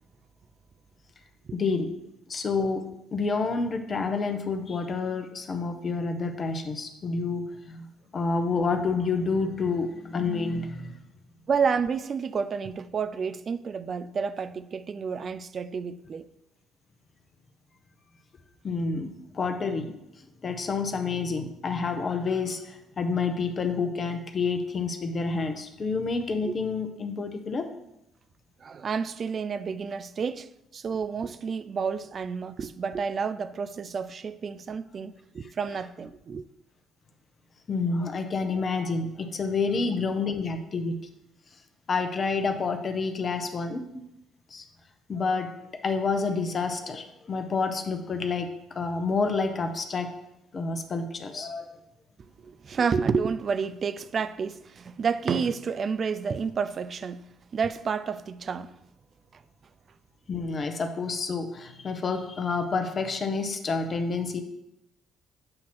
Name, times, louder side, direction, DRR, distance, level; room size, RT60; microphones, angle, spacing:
voice 1, 1.5-1.9 2.3-2.8 3.1-7.9 8.1-11.0 18.6-19.9 20.2-27.7 37.7-41.0 41.9-44.0 44.5-44.6 45.1-50.1 50.5-51.7 60.3-64.4, left 4 dB, 45° left, 0.9 m, -29 dB
voice 2, 11.5-16.3 26.5-26.6 28.6-36.4 52.2-57.3 57.5-58.8 59.3-59.4, right 6 dB, 45° right, 0.4 m, -30 dB
7.7 x 2.8 x 6.0 m
hypercardioid pair, 55°, 0 cm